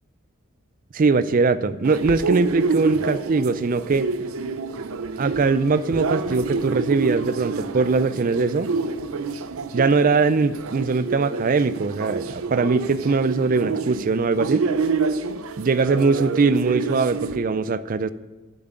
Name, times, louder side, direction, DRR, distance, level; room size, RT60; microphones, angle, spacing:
voice 1, 0.9-4.1 5.2-8.7 9.7-14.6 15.6-18.1, right 4 dB, 40° right, 15 dB, 0.4 m, -21 dB
sound 1, 1.8-17.4, right 4 dB, 85° right, 0.6 m, -28 dB
7.8 x 7.4 x 8.1 m, 1.2 s
head